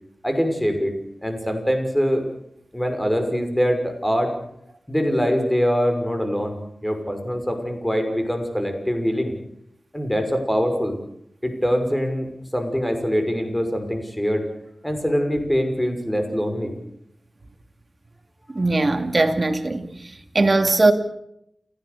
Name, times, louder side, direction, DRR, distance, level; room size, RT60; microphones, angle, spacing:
voice 1, 0.2-0.9 1.2-2.2 2.7-4.3 4.9-9.3 9.9-11.0 11.4-14.4 14.8-16.7, equal, 10° left, 5.9 m, -23 dB
voice 2, 18.6-19.9 20.3-20.9, right 2 dB, 40° right, 2.7 m, -19 dB
29.5 x 17.0 x 6.9 m
wide cardioid pair, 70°, 0 cm